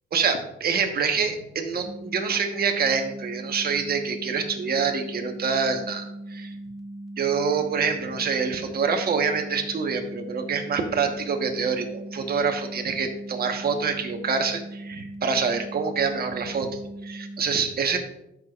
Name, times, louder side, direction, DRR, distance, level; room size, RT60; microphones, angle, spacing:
voice 1, 0.1-6.5 7.2-18.0, right 5 dB, 50° right, 5 dB, 1.3 m, -26 dB
sound 1, 1.8-17.4, right 1 dB, ahead, 2.0 m, -39 dB
13.0 x 6.1 x 2.5 m, 0.89 s
cardioid pair, 90°, 20 cm